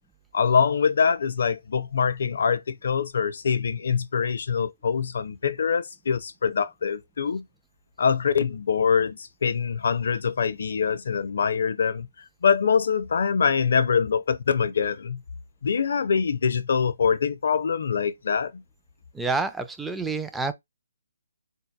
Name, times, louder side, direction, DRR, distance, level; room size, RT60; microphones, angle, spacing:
voice 1, 0.3-7.4 8.0-12.1 12.4-15.2 15.6-18.6, left 6 dB, 60° left, 0.5 m, -24 dB
voice 2, 19.1-20.5, right 4 dB, 5° right, 0.3 m, -28 dB
3.8 x 2.8 x 2.3 m
figure-of-eight pair, 145°, 0 cm